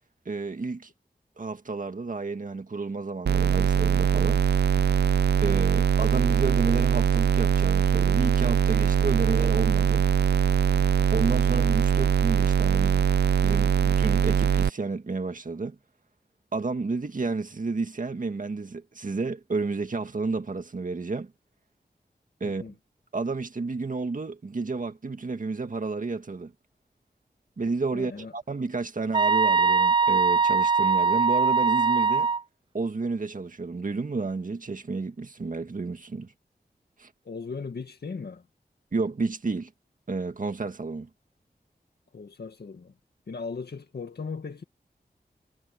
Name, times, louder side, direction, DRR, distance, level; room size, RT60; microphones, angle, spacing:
voice 1, 0.3-0.9 1.4-4.4 5.4-10.1 11.1-13.0 13.4-15.8 16.5-21.3 22.4-22.6 23.1-26.5 27.6-32.3 32.7-36.3 37.0-37.1 38.9-39.7 40.1-41.1, right 3 dB, 55° right, 1.9 m, -31 dB
sound 1, 3.3-14.7, right 7 dB, 85° right, 0.6 m, -22 dB
voice 2, 22.4-22.7 27.9-28.3 37.2-38.5 42.1-42.9 43.3-44.6, left 4 dB, 75° left, 2.1 m, -37 dB
sound 2, 29.1-32.4, right 4 dB, 30° right, 0.4 m, -21 dB
wide cardioid pair, 75°, 17 cm